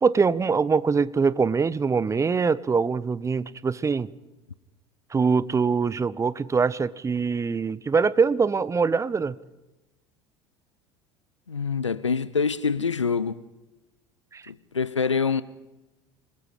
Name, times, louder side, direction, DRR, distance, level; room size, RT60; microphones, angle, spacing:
voice 1, 0.0-4.1 5.1-9.4 14.3-14.4, right 5 dB, 20° right, 0.8 m, -23 dB
voice 2, 11.5-13.4 14.5-15.4, left 5 dB, 90° left, 0.6 m, -25 dB
27.0 x 21.0 x 5.0 m
figure-of-eight pair, 70°, 15 cm